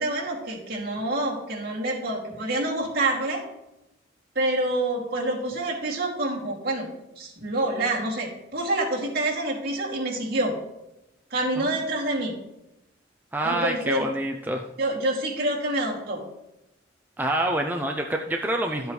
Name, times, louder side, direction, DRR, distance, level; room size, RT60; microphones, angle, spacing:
voice 1, 0.0-3.4 4.3-10.5 11.3-12.3 13.4-14.1 14.8-16.2, right 2 dB, 55° right, -3 dB, 2.6 m, -27 dB
voice 2, 13.3-14.7 17.2-18.9, right 1 dB, 10° right, 2 dB, 0.5 m, -27 dB
12.0 x 7.9 x 3.2 m, 0.93 s
head